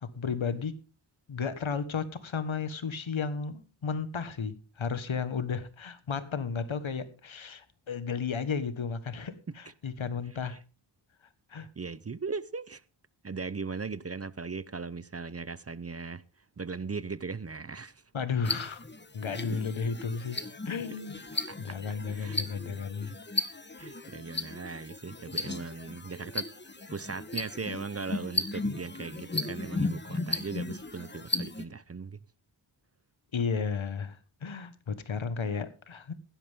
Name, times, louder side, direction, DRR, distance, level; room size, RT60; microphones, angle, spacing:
voice 1, 0.0-0.8 1.3-10.6 11.5-11.7 18.1-18.8 19.1-20.4 20.6-21.2 21.6-23.1 33.3-36.1, left 5 dB, 80° left, 1.5 m, -33 dB
voice 2, 11.5-12.8 13.2-16.2 16.6-18.0 19.5-19.6 21.5-21.8 22.1-23.2 23.8-26.5 26.9-32.2, right 4 dB, 30° right, 0.6 m, -38 dB
sound 1, 18.4-31.6, left 2 dB, 20° left, 1.2 m, -36 dB
16.5 x 12.0 x 3.6 m
wide cardioid pair, 105°, 47 cm